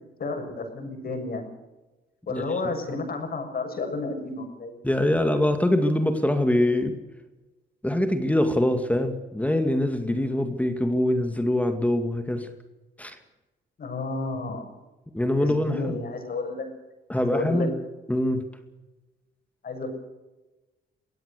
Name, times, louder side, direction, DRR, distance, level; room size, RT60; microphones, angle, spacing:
voice 1, 0.2-1.5 2.3-4.8 13.8-14.7 15.3-16.7 17.1-17.7 19.6-19.9, left 3 dB, 50° left, 5 dB, 6.9 m, -31 dB
voice 2, 2.3-2.7 4.8-7.0 7.8-12.5 13.0-13.2 15.1-16.0 17.1-17.7 18.1-18.4, left 1 dB, 5° left, 7 dB, 2.3 m, -24 dB
24.0 x 16.5 x 6.7 m, 1.1 s
cardioid pair, 90°, 20 cm